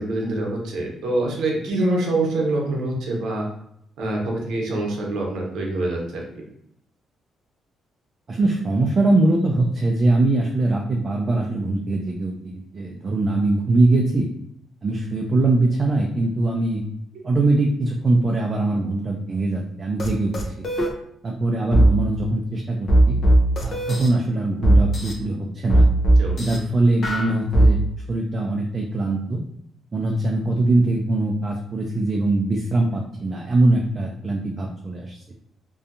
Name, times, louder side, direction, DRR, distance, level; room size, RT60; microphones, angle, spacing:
voice 1, 0.0-3.4 4.0-6.2 26.2-26.4, right 2 dB, 80° right, -1 dB, 0.8 m, -25 dB
voice 2, 8.3-14.3 14.8-16.8 17.2-20.7 21.2-23.2 23.6-25.9 26.4-27.8 28.1-29.4 29.9-35.2, right 2 dB, 35° right, 0 dB, 0.4 m, -22 dB
sound 1, 20.0-20.1 20.3-20.9 21.7-21.9 22.9-24.1 24.6-25.1 25.7-26.6 27.0-27.7, right 1 dB, 55° left, 0.6 m, -17 dB
2.6 x 2.3 x 2.5 m, 0.73 s
cardioid pair, 90°, 0 cm